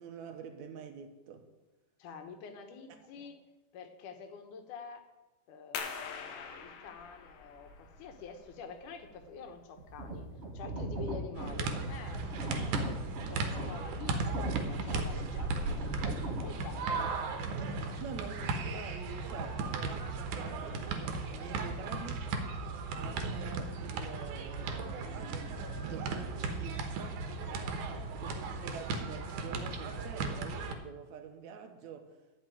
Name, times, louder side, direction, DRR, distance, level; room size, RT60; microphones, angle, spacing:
voice 1, 0.0-1.5 3.2-3.3 18.0-22.3 23.0-27.2 28.2-32.2, right 6 dB, 70° right, 2.4 m, -47 dB
voice 2, 2.0-3.4 3.7-5.0 5.5-10.3 10.5-12.7 13.2-17.1 27.9-28.1, left 5 dB, 85° left, 2.7 m, -47 dB
sound 1, 5.7-11.1, left 6 dB, 65° left, 2.1 m, -45 dB
sound 2, 9.8-17.0, right 2 dB, 50° right, 0.7 m, -39 dB
sound 3, 11.3-30.7, right 3 dB, 85° right, 2.7 m, -36 dB
11.5 x 6.0 x 9.1 m
omnidirectional pair, 3.5 m